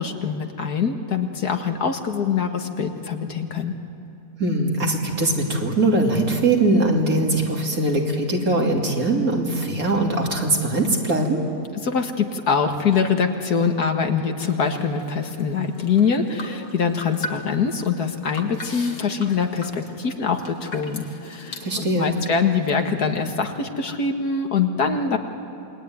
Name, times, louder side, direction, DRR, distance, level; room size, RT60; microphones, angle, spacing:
voice 1, 0.0-3.7 11.8-25.2, left 6 dB, 75° left, 5 dB, 2.3 m, -24 dB
voice 2, 4.4-11.4 21.6-22.1, right 2 dB, 60° right, 0 dB, 3.4 m, -21 dB
sound 1, 14.4-23.7, left 2 dB, 50° left, 2.2 m, -40 dB
28.0 x 22.0 x 9.5 m, 2.7 s
omnidirectional pair, 1.7 m